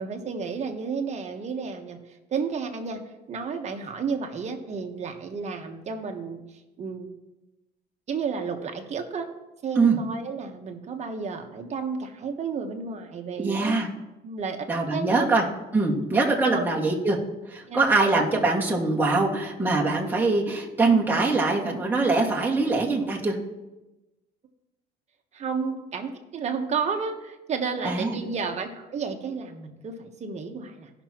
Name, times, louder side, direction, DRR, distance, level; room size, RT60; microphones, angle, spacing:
voice 1, 0.0-2.0 2.3-3.0 3.3-6.4 6.8-7.1 8.1-9.3 9.6-13.8 14.2-15.3 16.4-16.6 17.7-17.8 25.3-30.9, right 5 dB, 40° right, 4 dB, 1.3 m, -32 dB
voice 2, 13.4-13.9 14.7-15.4 15.7-17.2 17.7-23.3 27.8-28.2, right 3 dB, 10° right, -3 dB, 1.9 m, -23 dB
16.5 x 6.1 x 3.0 m, 1.0 s
cardioid pair, 110°, 17 cm